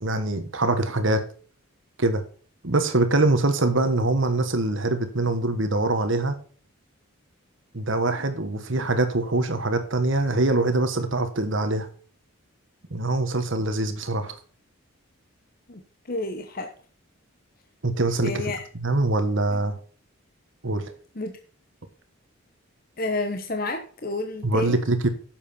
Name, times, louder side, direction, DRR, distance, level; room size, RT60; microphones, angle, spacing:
voice 1, 0.0-1.2 2.0-2.2 2.6-6.4 7.7-11.9 12.9-14.4 17.8-18.5 18.8-19.8 20.6-20.8 24.4-25.1, right 2 dB, 60° right, 8 dB, 1.3 m, -23 dB
voice 2, 16.1-16.7 18.2-18.6 21.2-21.3 23.0-24.8, left 2 dB, 45° left, 6 dB, 1.1 m, -30 dB
10.5 x 7.5 x 4.3 m, 0.42 s
head